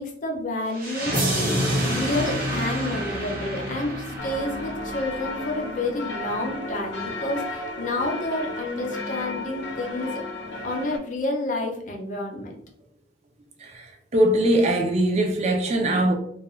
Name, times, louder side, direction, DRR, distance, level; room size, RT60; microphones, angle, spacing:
voice 1, 0.0-1.4 1.8-10.2 10.6-12.5, left 2 dB, 45° left, 0 dB, 0.5 m, -29 dB
sound 1, 0.7-5.7, equal, 50° right, 0.8 m, -28 dB
sound 2, 4.2-11.0, left 2 dB, 85° left, 0.6 m, -34 dB
voice 2, 13.6-16.1, right 1 dB, 35° right, 2 dB, 0.4 m, -21 dB
2.3 x 2.2 x 3.0 m, 0.71 s
head